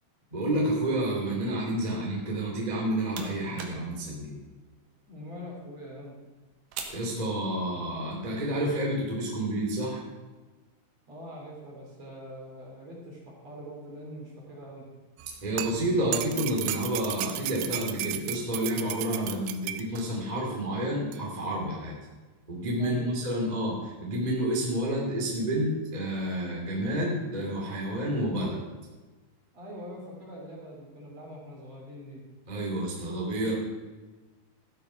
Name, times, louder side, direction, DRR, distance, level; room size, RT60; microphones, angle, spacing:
voice 1, 0.3-4.4 6.9-10.0 15.4-22.0 22.5-28.6 32.5-33.5, right 1 dB, 10° right, -3 dB, 2.0 m, -29 dB
sound 1, 2.6-7.9, right 6 dB, 70° right, 3.3 m, -46 dB
voice 2, 5.1-6.2 11.1-14.9 22.8-23.1 29.5-32.2, equal, 40° right, -3 dB, 3.6 m, -43 dB
sound 2, 15.2-20.0 21.1-21.2, right 14 dB, 85° right, 2.9 m, -34 dB
14.5 x 8.3 x 5.7 m, 1.3 s
omnidirectional pair, 5.3 m